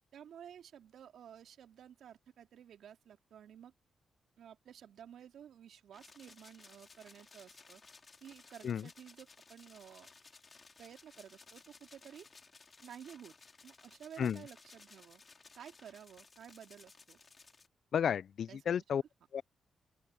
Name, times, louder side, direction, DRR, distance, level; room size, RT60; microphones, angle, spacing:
voice 1, 0.1-3.7 4.4-7.8 8.2-10.1 10.8-12.3 12.8-13.3 13.6-15.2 15.5-17.2 18.5-18.8, right 9 dB, 75° right, 3.0 m, -53 dB
sound 1, 5.9-17.7, left 4 dB, 45° left, 4.8 m, -59 dB
voice 2, 17.9-19.0 19.3-19.4, left 8 dB, 70° left, 0.6 m, -32 dB
open air
supercardioid pair, 45°, 0 cm